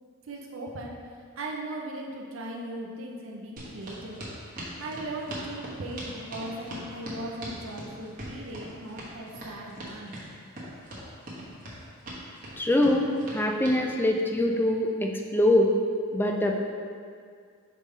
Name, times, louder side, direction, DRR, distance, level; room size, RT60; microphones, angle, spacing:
voice 1, 0.3-0.9 1.4-4.2 4.8-10.2, right 1 dB, 70° right, -1 dB, 0.6 m, -38 dB
sound 1, 3.6-13.8, right 1 dB, 40° right, 1.2 m, -40 dB
voice 2, 12.6-15.7 16.1-16.6, left 1 dB, 10° left, 1 dB, 0.4 m, -24 dB
5.2 x 3.4 x 5.4 m, 2.2 s
head